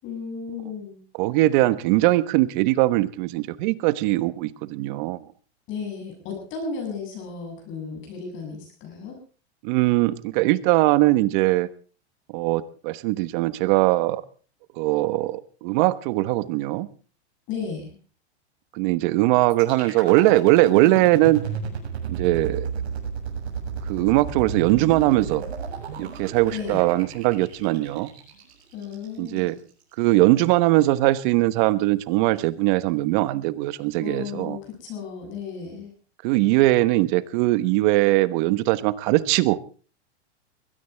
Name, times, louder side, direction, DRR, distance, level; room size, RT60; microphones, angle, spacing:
voice 1, 0.0-1.0 5.7-9.2 17.5-18.0 26.5-26.8 28.7-29.6 34.0-35.9, left 5 dB, 35° left, 2 dB, 7.7 m, -34 dB
voice 2, 1.2-5.2 9.6-11.7 12.3-14.2 14.8-16.9 18.7-21.5 22.1-22.7 23.9-25.4 26.0-28.1 29.2-29.6 30.0-34.6 36.2-39.6, right 18 dB, 45° right, 16 dB, 1.3 m, -21 dB
sound 1, 19.5-29.5, right 6 dB, 70° right, 7.4 m, -33 dB
22.5 x 17.0 x 3.4 m, 0.38 s
hypercardioid pair, 140°, 34 cm